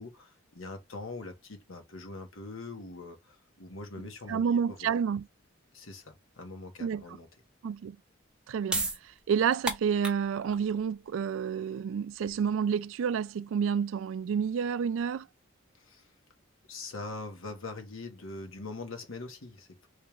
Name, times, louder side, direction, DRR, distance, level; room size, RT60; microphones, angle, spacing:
voice 1, 0.0-4.9 5.7-7.3 15.7-16.1 16.7-19.9, left 3 dB, 90° left, 1.3 m, -43 dB
voice 2, 4.3-5.3 6.8-7.2 7.6-8.0 8.5-15.3, right 7 dB, 80° right, 0.3 m, -29 dB
sound 1, 8.2-15.0, right 2 dB, 5° right, 0.6 m, -38 dB
3.3 x 3.0 x 3.3 m
head